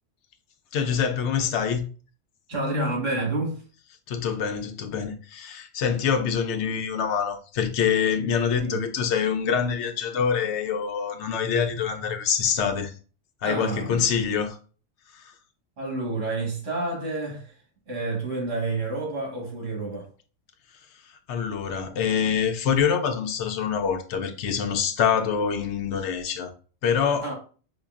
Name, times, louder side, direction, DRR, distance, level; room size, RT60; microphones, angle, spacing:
voice 1, 0.7-1.8 2.5-2.9 4.1-12.9 13.4-14.6 15.1-15.2 21.3-26.5 26.8-27.3, left 7 dB, 70° left, 0.8 m, -25 dB
voice 2, 2.5-3.6 8.6-8.8 13.4-14.1 15.8-17.5 17.9-20.1 27.2-27.3, right 3 dB, 75° right, 1.5 m, -29 dB
5.2 x 2.3 x 2.3 m
omnidirectional pair, 1.2 m